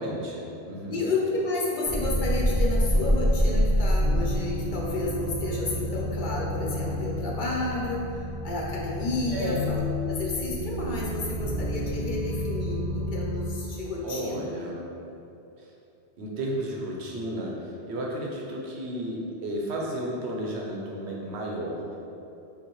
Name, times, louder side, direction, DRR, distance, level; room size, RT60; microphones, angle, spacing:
voice 1, 0.0-1.0 9.2-9.6 14.0-14.8 15.6-15.7 16.2-22.0, right 1 dB, 85° right, -2 dB, 1.0 m, -33 dB
voice 2, 0.9-9.8 10.1-14.5, left 2 dB, 55° left, -3 dB, 0.7 m, -31 dB
sound 1, 1.8-13.5, equal, 55° right, 1.1 m, -28 dB
5.7 x 2.4 x 3.0 m, 2.9 s
omnidirectional pair, 1.1 m